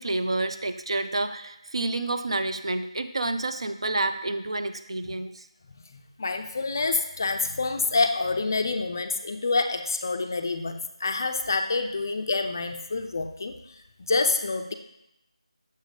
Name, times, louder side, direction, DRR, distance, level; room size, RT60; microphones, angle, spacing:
voice 1, 0.0-5.5, right 2 dB, 55° right, 9 dB, 0.4 m, -29 dB
voice 2, 5.9-14.7, left 3 dB, 35° left, 6 dB, 0.4 m, -27 dB
6.6 x 5.0 x 3.2 m, 0.85 s
figure-of-eight pair, 165°, 3 cm